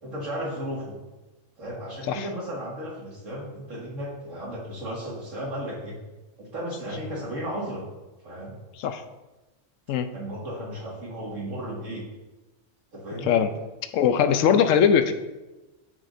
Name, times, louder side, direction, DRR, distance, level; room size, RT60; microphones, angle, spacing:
voice 1, 0.0-1.0 1.6-6.0 6.4-7.9 8.2-8.5 10.1-12.0 12.9-13.4, equal, 80° right, -4 dB, 2.4 m, -34 dB
voice 2, 13.9-15.1, left 8 dB, 85° left, 10 dB, 1.0 m, -20 dB
13.5 x 4.8 x 2.6 m, 1.1 s
omnidirectional pair, 1.3 m